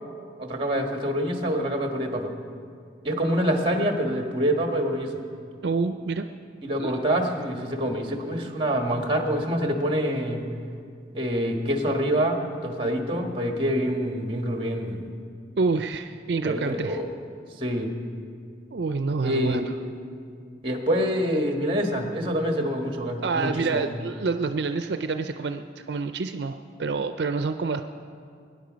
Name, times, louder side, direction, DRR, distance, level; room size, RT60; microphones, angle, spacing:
voice 1, 0.4-2.3 3.0-5.2 6.6-10.4 11.1-15.0 16.4-17.1 17.6-17.9 19.2-19.6 20.6-23.8, equal, 30° right, 3 dB, 1.6 m, -26 dB
voice 2, 5.6-6.3 6.8-7.1 15.6-17.0 18.7-19.8 23.2-27.8, right 4 dB, 70° right, 8 dB, 0.5 m, -27 dB
22.5 x 10.0 x 5.2 m, 2.3 s
head